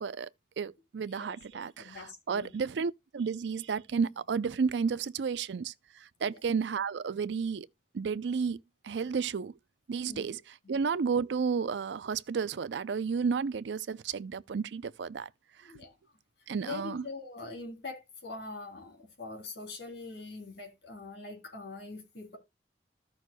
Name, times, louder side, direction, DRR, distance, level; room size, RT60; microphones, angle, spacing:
voice 1, 0.6-5.7 6.2-7.7 7.9-8.6 8.8-9.5 9.9-10.4 10.7-15.3 16.5-17.0, right 5 dB, 85° right, 0.4 m, -32 dB
voice 2, 1.1-2.5 6.3-6.4 10.0-10.3 10.6-10.8 15.6-15.9 16.6-22.4, left 3 dB, 75° left, 3.3 m, -43 dB
14.5 x 6.3 x 2.2 m
head